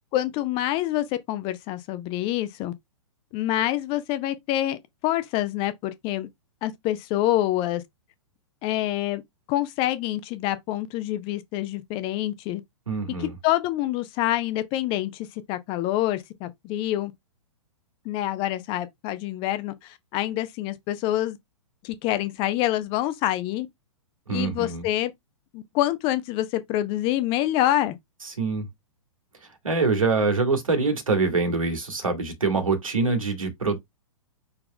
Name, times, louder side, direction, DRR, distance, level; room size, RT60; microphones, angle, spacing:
voice 1, 0.1-2.7 3.3-6.3 6.6-7.8 8.6-9.2 9.5-12.6 13.2-17.1 18.0-21.4 21.8-23.7 24.3-25.1 25.5-27.9, left 14 dB, 30° left, 0.7 m, -26 dB
voice 2, 12.9-13.3 24.3-24.9 28.2-28.7 29.6-33.8, right 4 dB, 80° right, 1.9 m, -24 dB
5.5 x 3.9 x 2.2 m
figure-of-eight pair, 110°, 17 cm